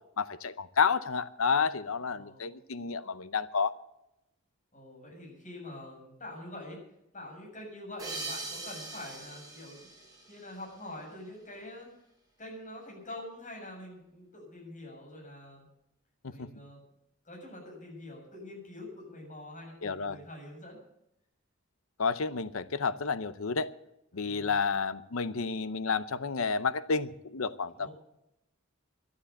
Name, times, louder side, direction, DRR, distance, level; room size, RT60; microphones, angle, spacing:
voice 1, 0.2-3.8 16.2-16.5 19.8-20.2 22.0-23.7 24.1-27.9, left 5 dB, 75° left, 15 dB, 0.7 m, -30 dB
voice 2, 2.1-2.5 4.7-6.8 7.1-9.9 10.3-11.9 12.4-15.7 16.3-16.8 17.2-20.8 24.1-24.6 27.7-27.9, left 1 dB, 40° left, -1 dB, 7.4 m, -45 dB
sound 1, 8.0-11.1, right 2 dB, 20° right, 5.0 m, -42 dB
12.5 x 11.5 x 8.3 m, 0.83 s
head